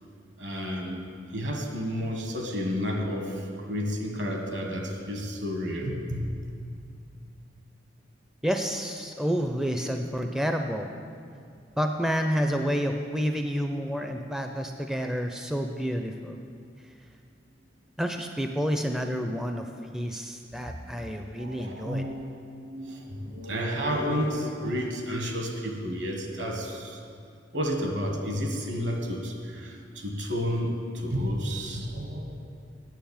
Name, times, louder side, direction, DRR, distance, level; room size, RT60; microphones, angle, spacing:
voice 1, 0.4-0.9 1.3-6.2 6.6-6.7 21.1-22.3 22.6-27.0 27.5-32.4, equal, 70° right, 2 dB, 1.6 m, -31 dB
voice 2, 8.4-10.9 11.8-16.4 18.0-22.0, equal, 5° right, 4 dB, 0.4 m, -29 dB
9.2 x 7.2 x 7.1 m, 2.3 s
head